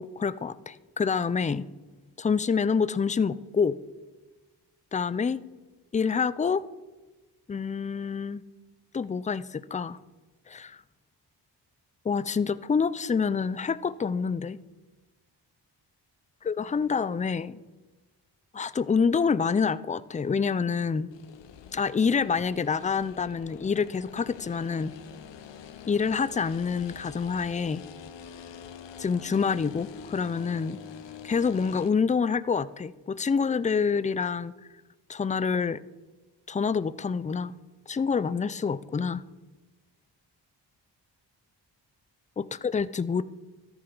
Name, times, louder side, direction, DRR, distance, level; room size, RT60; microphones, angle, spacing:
voice 1, 0.0-1.6 2.2-3.8 4.9-5.4 5.9-6.6 7.5-8.4 8.9-10.0 10.5-10.8 12.0-14.6 16.4-17.5 18.5-21.1 21.7-24.9 25.9-27.8 29.0-30.8 31.2-34.5 35.1-35.8 36.5-37.5 37.9-39.2 42.4-43.2, left 5 dB, 20° left, 16 dB, 0.4 m, -27 dB
sound 1, 21.1-31.9, left 8 dB, 90° left, 0.8 m, -45 dB
13.5 x 9.9 x 4.0 m, 1.2 s
cardioid pair, 70°, 42 cm